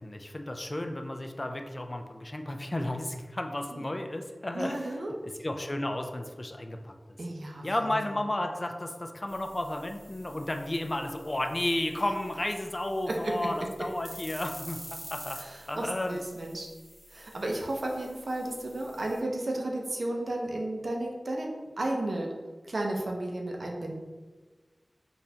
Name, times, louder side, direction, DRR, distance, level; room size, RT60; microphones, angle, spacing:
voice 1, 0.0-4.9 5.4-7.2 7.6-15.4 15.7-16.2, left 1 dB, 35° left, 5 dB, 0.3 m, -33 dB
voice 2, 4.5-5.1 7.2-8.0 13.1-13.4 15.4-16.7 17.1-22.3 22.6-24.0, right 1 dB, 70° right, 0 dB, 0.5 m, -33 dB
sound 1, 9.3-19.2, equal, 15° right, 1.3 m, -49 dB
3.9 x 2.4 x 2.8 m, 1.3 s
wide cardioid pair, 65°, 0 cm